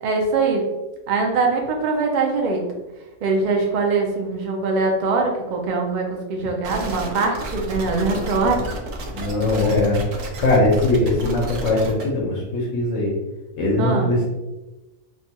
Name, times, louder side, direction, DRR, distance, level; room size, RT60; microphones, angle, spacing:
voice 1, 0.0-0.6 1.1-2.6 3.2-6.0 6.3-8.6 13.8-14.1, right 3 dB, 65° right, 1 dB, 0.4 m, -22 dB
sound 1, 6.6-12.0, right 1 dB, 85° right, 1.0 m, -31 dB
voice 2, 9.1-10.0 10.4-13.2 13.6-14.2, left 2 dB, 80° left, -3 dB, 1.1 m, -20 dB
3.1 x 2.2 x 2.8 m, 1.1 s
omnidirectional pair, 1.3 m